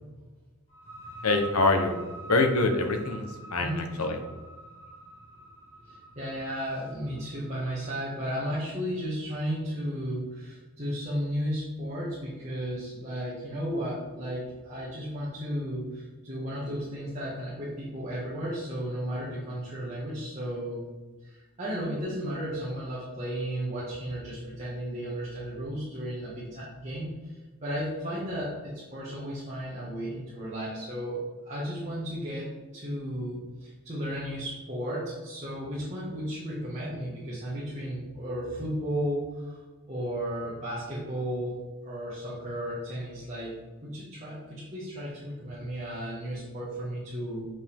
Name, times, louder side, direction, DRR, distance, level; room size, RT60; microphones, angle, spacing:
sound 1, 0.7-8.2, right 2 dB, 25° left, 1.9 m, -45 dB
voice 1, 1.2-2.0 2.3-4.2, left 2 dB, 85° left, 5 dB, 1.0 m, -25 dB
voice 2, 5.9-20.8 21.2-27.3 27.6-31.2 31.4-39.6 39.9-41.6 41.8-47.5, equal, 30° right, -8 dB, 1.7 m, -34 dB
7.8 x 5.3 x 3.6 m, 1.3 s
head